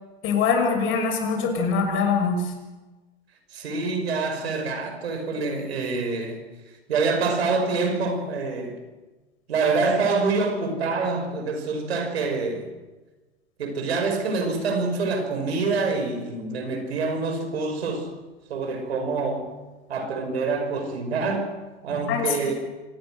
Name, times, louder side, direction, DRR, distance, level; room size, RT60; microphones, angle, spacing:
voice 1, 0.2-2.4 22.1-22.3, left 5 dB, 40° left, 5 dB, 6.1 m, -23 dB
voice 2, 3.5-6.4 6.9-8.8 9.5-12.7 13.6-18.1 18.5-19.5 19.9-21.5 21.8-22.5, right 4 dB, 75° right, 6 dB, 6.0 m, -26 dB
26.0 x 19.0 x 6.5 m, 1.2 s
hypercardioid pair, 115°, 32 cm